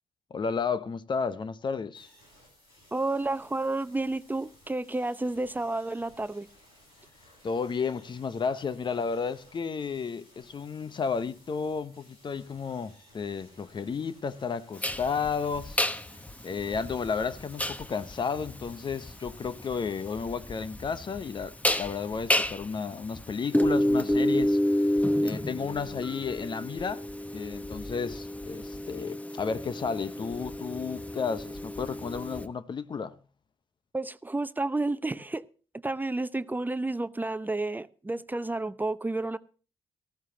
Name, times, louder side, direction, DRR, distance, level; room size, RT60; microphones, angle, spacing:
voice 1, 0.3-2.1 7.4-15.8 16.4-24.6 25.2-27.0 27.3-33.1, left 5 dB, 45° left, 0.9 m, -32 dB
sound 1, 1.9-20.1, left 1 dB, 90° left, 6.8 m, -58 dB
voice 2, 2.9-6.5 33.9-35.4 35.8-39.4, right 2 dB, 15° right, 0.7 m, -31 dB
sound 2, 14.8-32.4, left 1 dB, 10° left, 1.1 m, -30 dB
18.5 x 14.0 x 2.8 m
hypercardioid pair, 45°, 11 cm